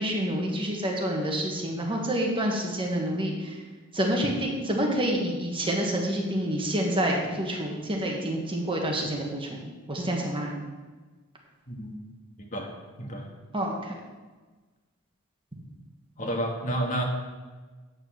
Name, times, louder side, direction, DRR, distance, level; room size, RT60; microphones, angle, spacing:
voice 1, 0.0-3.6 3.9-10.6 13.5-13.9, right 1 dB, 25° right, 0 dB, 1.4 m, -28 dB
voice 2, 11.7-12.0 12.4-12.7 13.0-13.3 16.2-17.0, right 1 dB, 35° left, 1 dB, 1.6 m, -30 dB
8.7 x 6.5 x 6.3 m, 1.3 s
head